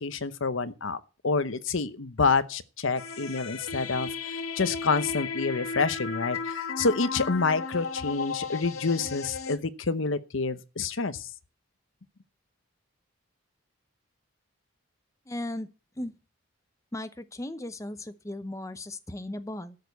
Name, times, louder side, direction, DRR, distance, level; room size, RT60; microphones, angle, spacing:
voice 1, 0.0-4.1 4.6-11.3, left 4 dB, 70° left, 0.8 m, -28 dB
sound 1, 3.0-9.6, left 5 dB, 85° left, 1.7 m, -34 dB
voice 2, 15.3-15.7 16.0-16.1 16.9-19.8, left 1 dB, 15° left, 0.6 m, -36 dB
13.0 x 6.6 x 8.1 m
head